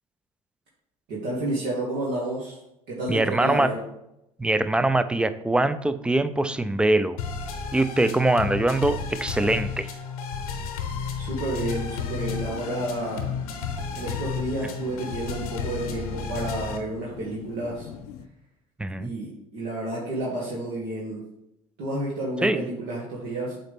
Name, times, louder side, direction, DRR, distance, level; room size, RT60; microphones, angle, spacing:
voice 1, 1.1-2.6 2.9-3.8 11.2-13.2 13.9-17.9 19.0-21.2 21.8-23.5, right 1 dB, 65° right, -5 dB, 1.7 m, -30 dB
voice 2, 3.1-3.7 4.4-7.2 7.7-9.9 18.8-19.1 22.4-22.6, right 2 dB, 5° right, 13 dB, 0.4 m, -23 dB
sound 1, 7.2-16.8, left 6 dB, 90° left, 0.9 m, -32 dB
sound 2, 12.1-18.3, left 9 dB, 60° left, 0.5 m, -43 dB
7.5 x 4.0 x 3.5 m, 0.84 s
hypercardioid pair, 70°, 18 cm